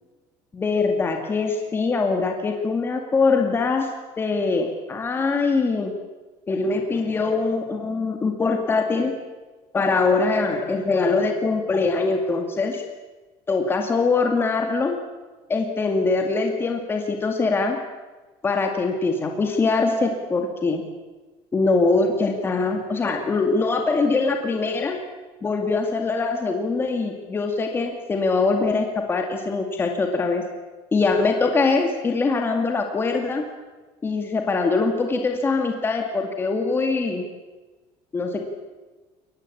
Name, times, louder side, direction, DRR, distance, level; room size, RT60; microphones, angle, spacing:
voice 1, 0.5-3.9 4.2-5.9 6.5-9.1 9.7-12.8 13.5-15.0 15.5-17.8 18.4-20.8 21.5-25.0 25.4-30.4 30.9-33.5 34.0-37.2 38.1-38.4, left 3 dB, 15° left, 3 dB, 2.2 m, -23 dB
23.0 x 19.0 x 8.6 m, 1.2 s
cardioid pair, 170°, 13 cm